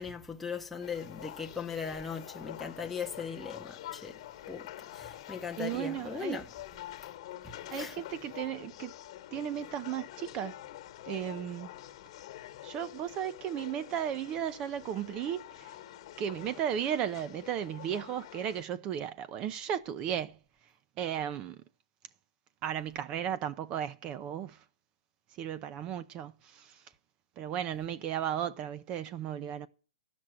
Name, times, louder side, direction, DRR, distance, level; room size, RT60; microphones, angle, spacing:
voice 1, 0.0-4.2 4.5-6.5 7.4-8.0, left 5 dB, 5° left, 0.8 m, -39 dB
sound 1, 0.8-18.6, left 13 dB, 50° left, 1.3 m, -47 dB
voice 2, 5.6-6.4 7.7-8.9 9.3-10.6 11.1-11.7 12.6-15.8 16.2-20.4 21.0-21.6 22.6-24.6 25.4-26.8 27.4-29.7, right 10 dB, 30° right, 0.6 m, -35 dB
12.5 x 6.1 x 9.0 m
hypercardioid pair, 145°, 3 cm